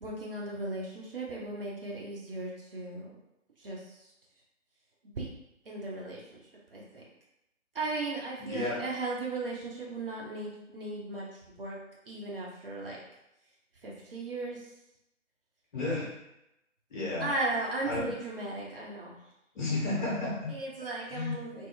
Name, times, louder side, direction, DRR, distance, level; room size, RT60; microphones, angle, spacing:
voice 1, 0.0-3.1 3.6-4.0 5.0-5.3 5.7-6.4 6.7-7.0 7.7-11.8 12.1-13.0 13.8-14.7 17.2-19.2 20.5-21.7, right 2 dB, 45° right, -3 dB, 0.7 m, -36 dB
voice 2, 8.4-8.8 15.7-16.1 16.9-17.3 17.9-18.1 19.5-20.5 21.1-21.4, left 2 dB, 35° left, -5 dB, 1.1 m, -32 dB
2.8 x 2.3 x 3.4 m, 0.86 s
figure-of-eight pair, 145°, 40 cm